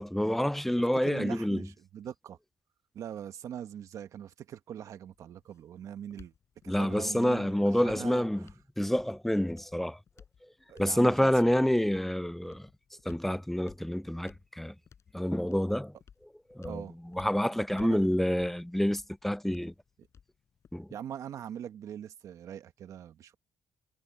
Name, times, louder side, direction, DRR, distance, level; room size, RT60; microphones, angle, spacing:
voice 1, 0.0-1.7 6.7-8.4 8.8-10.0 10.7-12.7 13.1-14.7 15.1-15.9 16.6-16.8 17.1-19.7 20.7-20.9, equal, 5° left, 0.5 m, -28 dB
voice 2, 1.0-2.4 2.9-6.3 6.6-8.5 10.7-11.6 16.6-16.9 17.8-18.1 20.0-20.1 20.9-23.3, right 9 dB, 75° right, 1.3 m, -42 dB
sound 1, 5.0-21.1, left 7 dB, 60° left, 6.5 m, -59 dB
cardioid pair, 65°, 6 cm